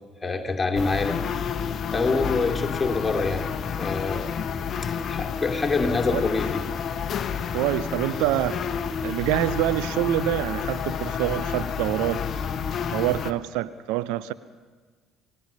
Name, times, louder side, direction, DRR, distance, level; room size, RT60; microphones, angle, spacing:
voice 1, 0.2-1.2 1.9-3.4 3.8-4.3 4.8-6.6, left 3 dB, 20° left, 2 dB, 2.6 m, -26 dB
sound 1, 0.8-13.3, left 7 dB, 40° left, 1.0 m, -30 dB
voice 2, 7.5-8.6 9.0-12.2 12.9-14.3, right 15 dB, 60° right, 16 dB, 0.5 m, -26 dB
28.0 x 17.5 x 5.7 m, 1.5 s
figure-of-eight pair, 55°, 0 cm